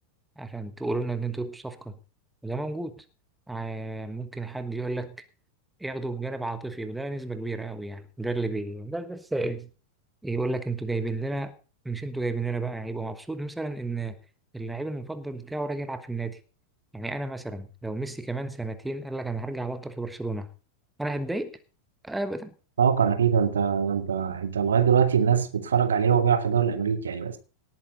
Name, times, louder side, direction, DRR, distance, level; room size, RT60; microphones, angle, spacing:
voice 1, 0.4-1.9 2.4-3.0 3.5-5.2 5.8-9.7 10.2-11.5 11.8-14.2 14.5-16.4 16.9-20.5 21.0-21.6 22.0-22.5, right 2 dB, 5° right, 1.3 m, -32 dB
voice 2, 22.8-27.4, right 7 dB, 65° right, 1.4 m, -23 dB
18.0 x 8.9 x 3.9 m
figure-of-eight pair, 90°, 0 cm